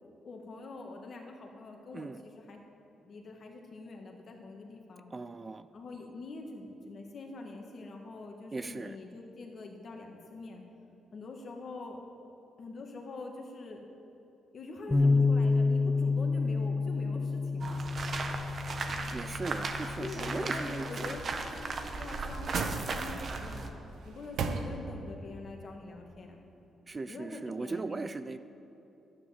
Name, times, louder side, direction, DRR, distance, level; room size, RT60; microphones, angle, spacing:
voice 1, 0.2-2.6 3.0-5.1 5.7-10.6 11.1-12.0 12.6-13.8 14.5-17.8 20.0-23.7 24.1-26.4 27.1-28.1, left 3 dB, 50° left, 2 dB, 1.8 m, -44 dB
voice 2, 5.1-5.7 8.5-9.0 14.9-15.2 19.1-21.2 26.9-28.4, right 3 dB, 30° right, 12 dB, 0.4 m, -38 dB
Bass guitar, 14.9-21.1, left 3 dB, 10° left, 1.1 m, -29 dB
sound 1, 17.6-23.7, right 3 dB, 45° right, 1.1 m, -36 dB
sound 2, 21.7-23.4 23.9-25.2 25.6-25.7, right 5 dB, 75° right, 0.9 m, -38 dB
11.5 x 9.9 x 7.2 m, 3.0 s
cardioid pair, 95°, 0 cm